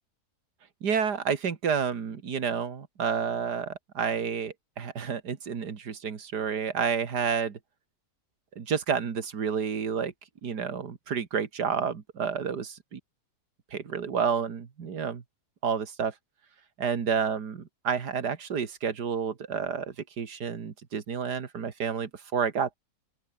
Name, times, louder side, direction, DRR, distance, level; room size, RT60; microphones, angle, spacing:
voice 1, 0.8-7.6 8.6-10.1 10.4-13.0 13.7-15.2 15.6-16.1 16.8-22.7, right 6 dB, 90° right, 2.4 m, -30 dB
open air
omnidirectional pair, 1.7 m